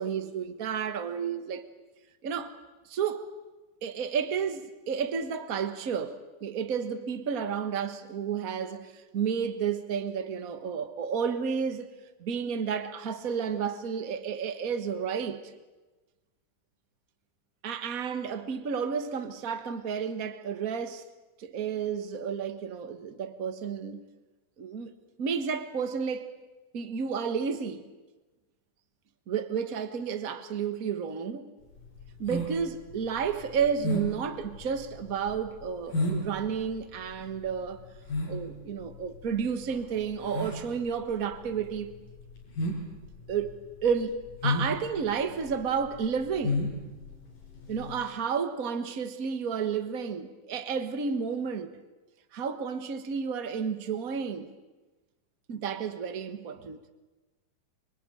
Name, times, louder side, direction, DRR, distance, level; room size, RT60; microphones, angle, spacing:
voice 1, 0.0-1.6 2.2-2.5 2.9-3.3 3.8-11.9 12.2-15.4 17.6-21.0 21.4-24.0 24.6-24.9 25.2-26.3 26.7-27.8 29.3-31.5 32.2-37.8 38.3-41.9 43.3-43.5 43.8-44.2 44.4-46.7 47.7-51.7 52.3-54.5 55.5-56.8, right 6 dB, 80° right, 0.7 m, -31 dB
sound 1, 31.7-48.0, left 1 dB, 75° left, 7.2 m, -33 dB
27.0 x 24.0 x 9.1 m
omnidirectional pair, 3.9 m